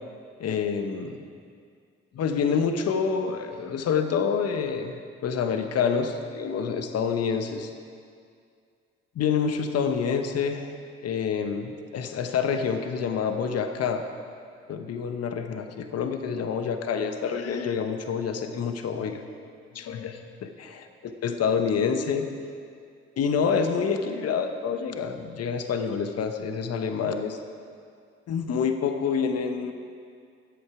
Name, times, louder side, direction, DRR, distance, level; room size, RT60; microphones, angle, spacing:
voice 1, 0.4-1.2 2.1-7.7 9.1-10.7 11.0-14.0 14.7-19.2 19.7-22.3 23.2-27.4 28.3-29.7, left 6 dB, 55° left, 7 dB, 1.0 m, -27 dB
13.0 x 8.1 x 4.8 m, 2.3 s
supercardioid pair, 60°, 29 cm